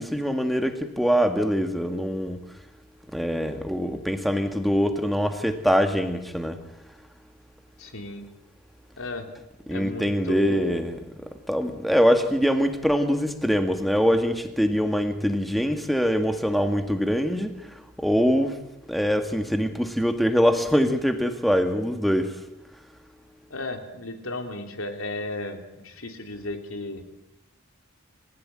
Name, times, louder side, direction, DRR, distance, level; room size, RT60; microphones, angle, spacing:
voice 1, 0.0-2.4 3.1-6.6 9.7-11.0 11.5-17.5 18.0-18.5 18.9-22.3, equal, ahead, 7 dB, 1.9 m, -23 dB
voice 2, 7.8-8.2 9.0-9.3 9.6-10.8 23.5-27.0, left 2 dB, 80° left, 6 dB, 3.3 m, -34 dB
28.5 x 15.5 x 9.0 m, 0.91 s
head